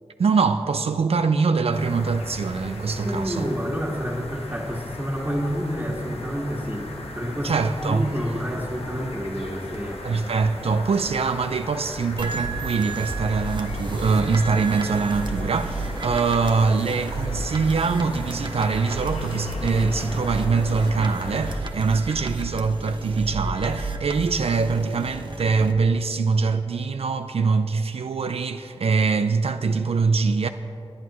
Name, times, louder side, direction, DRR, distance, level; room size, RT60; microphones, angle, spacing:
voice 1, 0.2-3.5 7.4-8.1 10.0-30.5, right 4 dB, 70° right, 0.4 m, -23 dB
sound 1, 1.7-21.6, left 1 dB, 70° left, 1.3 m, -37 dB
voice 2, 3.0-6.9 7.1-10.0, equal, 20° right, 1.8 m, -28 dB
sound 2, 12.2-25.7, right 2 dB, 50° right, 1.0 m, -32 dB
19.0 x 9.3 x 3.0 m
cardioid pair, 50°, 10 cm